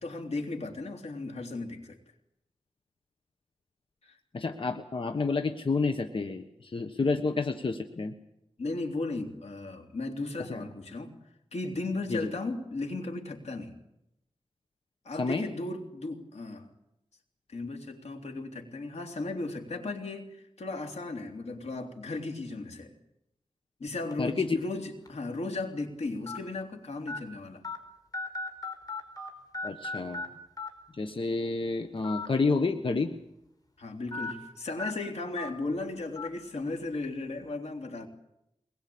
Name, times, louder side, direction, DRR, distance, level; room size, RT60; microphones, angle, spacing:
voice 1, 0.0-2.0 4.0-4.2 8.6-11.1 11.5-13.7 15.0-16.7 17.5-22.9 23.8-27.6 33.8-38.1, left 2 dB, 85° left, 3 dB, 3.3 m, -36 dB
voice 2, 4.3-8.1 10.5-10.6 12.1-12.2 15.2-15.5 24.2-24.6 29.6-30.2 31.0-33.1, left 4 dB, 55° left, 6 dB, 1.4 m, -29 dB
sound 1, 24.1-24.3 25.0-25.1 26.3-26.4 27.1-27.2 27.6-27.8 28.1-29.3 29.5-30.3 30.6-30.7 32.0-32.3 32.6-32.7 34.1-34.3 34.8-34.9 35.4-35.5 36.2-36.3, left 3 dB, 35° left, 5.4 m, -35 dB
23.0 x 21.0 x 8.7 m, 0.84 s
wide cardioid pair, 85°, 11 cm